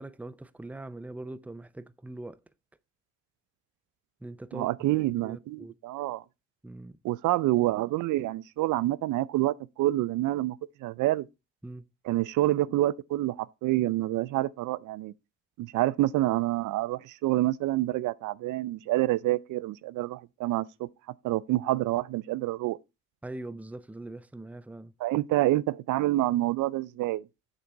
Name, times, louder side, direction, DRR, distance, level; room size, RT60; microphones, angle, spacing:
voice 1, 0.0-2.4 4.2-5.7 6.6-7.0 11.6-11.8 23.2-24.9, right 2 dB, 5° right, 0.6 m, -42 dB
voice 2, 4.5-6.2 7.0-11.3 12.1-15.1 15.6-20.9 21.2-22.8 25.0-27.2, right 16 dB, 85° right, 0.5 m, -27 dB
7.7 x 6.8 x 4.5 m
cardioid pair, 90°, 30 cm